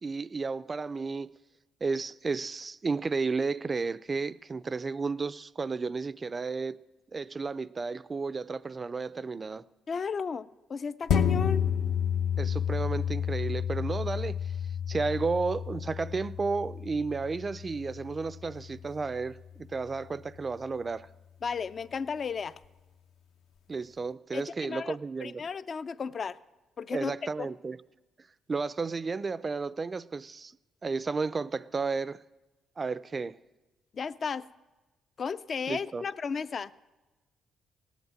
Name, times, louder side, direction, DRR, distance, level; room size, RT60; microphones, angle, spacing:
voice 1, 0.0-1.3 1.8-6.8 7.1-9.6 12.4-14.5 14.9-21.1 23.7-25.4 26.9-27.8 28.5-30.5 30.8-32.2 32.8-33.4 35.7-36.0, right 4 dB, 30° right, 0.4 m, -32 dB
voice 2, 9.9-11.6 21.4-22.6 24.3-26.4 26.8-27.5 33.9-34.5 35.2-36.7, left 5 dB, 45° left, 0.4 m, -34 dB
sound 1, 11.1-19.9 20.3-20.4, left 8 dB, 75° left, 0.8 m, -31 dB
18.0 x 8.1 x 7.8 m
cardioid pair, 90°, 0 cm